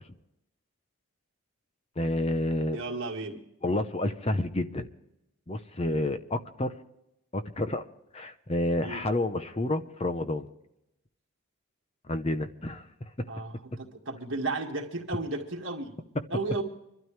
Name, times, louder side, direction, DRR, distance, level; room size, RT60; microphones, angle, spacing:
voice 1, 2.0-2.8 3.6-4.9 5.5-6.7 7.3-7.9 8.1-10.5 12.1-13.1, left 1 dB, 25° left, 9 dB, 0.7 m, -29 dB
voice 2, 2.7-3.4 8.8-9.0 13.3-16.0 16.3-16.6, right 3 dB, 55° right, 1 dB, 2.1 m, -34 dB
25.5 x 12.5 x 3.3 m, 0.85 s
head